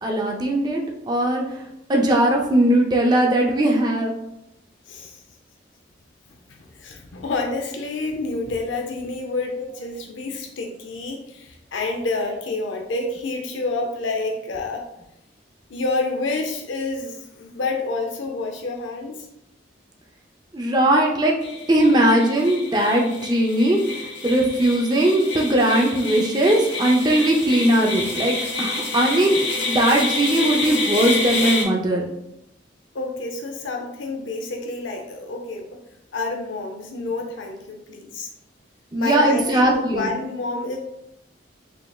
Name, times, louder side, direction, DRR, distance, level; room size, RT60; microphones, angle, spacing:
voice 1, 0.0-0.8 1.1-1.6 1.9-4.1 9.6-9.8 12.2-12.4 20.5-21.3 21.7-29.4 29.7-32.1 38.9-40.1, right 1 dB, 20° right, 0 dB, 0.5 m, -19 dB
voice 2, 4.9-5.2 6.5-14.9 15.7-19.3 32.9-35.8 36.1-38.3 38.9-40.8, left 3 dB, 90° left, 2 dB, 0.5 m, -28 dB
sound 1, 21.4-31.6, left 3 dB, 70° left, 0.9 m, -28 dB
5.0 x 3.3 x 2.3 m, 0.86 s
head